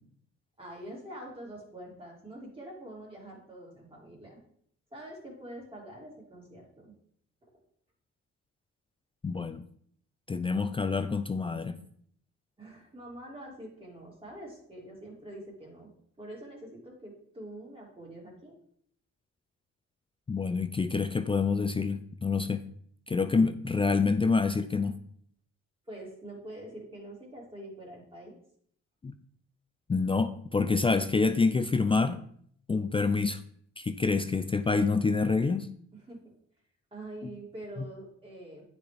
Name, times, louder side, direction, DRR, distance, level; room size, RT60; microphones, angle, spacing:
voice 1, 0.6-4.4 4.9-7.0 7.4-7.5 12.6-15.9 16.2-18.6 25.9-28.4 35.9-36.2 36.9-38.6, right 1 dB, 20° right, -3 dB, 2.8 m, -45 dB
voice 2, 9.2-9.6 10.3-11.8 20.3-22.6 23.1-25.0 29.0-29.1 29.9-32.2 32.7-33.4 33.8-35.7, left 4 dB, 20° left, 9 dB, 0.3 m, -27 dB
9.2 x 4.2 x 3.4 m, 0.64 s
cardioid pair, 90°, 30 cm